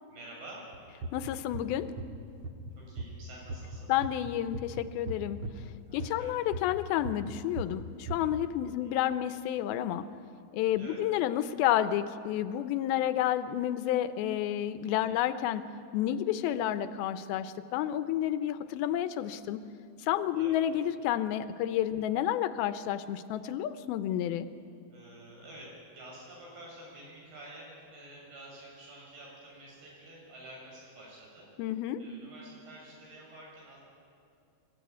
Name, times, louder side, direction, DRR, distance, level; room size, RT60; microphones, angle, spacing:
voice 1, 0.1-0.6 2.8-3.9 5.9-6.3 8.8-9.0 10.8-11.0 15.1-15.2 20.3-20.6 21.9-22.0 24.9-31.5 32.0-33.8, right 1 dB, 85° right, -3 dB, 8.6 m, -49 dB
sound 1, 0.7-2.7 3.0-6.8 7.0-8.4, right 2 dB, 50° right, 1.8 m, -38 dB
voice 2, 1.1-1.9 3.9-5.4 5.9-10.1 10.5-15.7 15.9-19.6 20.0-24.5 31.6-32.0, left 11 dB, 80° left, 12 dB, 2.5 m, -30 dB
24.5 x 14.0 x 9.2 m, 2.4 s
omnidirectional pair, 4.4 m